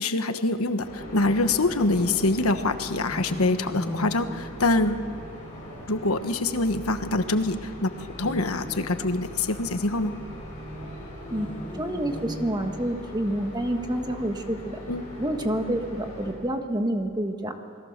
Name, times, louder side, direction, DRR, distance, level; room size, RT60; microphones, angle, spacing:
voice 1, 0.0-5.1 5.9-10.1 14.9-15.0, left 2 dB, 75° left, 8 dB, 1.3 m, -25 dB
sound 1, 0.8-16.3, equal, 30° left, 7.6 m, -40 dB
sound 2, 3.0-5.3 8.1-9.4 11.2-13.1, left 1 dB, 10° left, 1.8 m, -38 dB
voice 2, 11.7-14.8 15.2-17.5, right 1 dB, 20° right, 5 dB, 1.5 m, -28 dB
27.5 x 21.0 x 6.7 m, 2.4 s
head